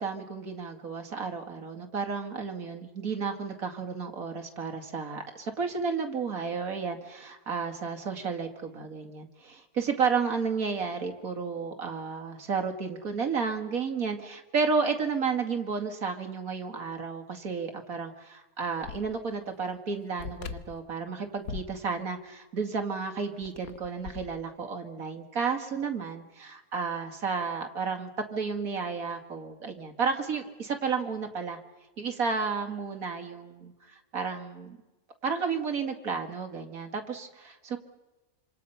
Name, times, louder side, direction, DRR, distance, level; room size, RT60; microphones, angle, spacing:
voice 1, 0.0-31.6 32.0-34.8 35.2-37.8, right 5 dB, 65° right, 4 dB, 2.7 m, -32 dB
sound 1, 18.8-19.0 19.3-19.4 20.2-20.9 21.4-21.8 23.2-24.4, left 6 dB, 70° left, 1.5 m, -39 dB
27.0 x 26.5 x 5.7 m, 1.1 s
omnidirectional pair, 1.6 m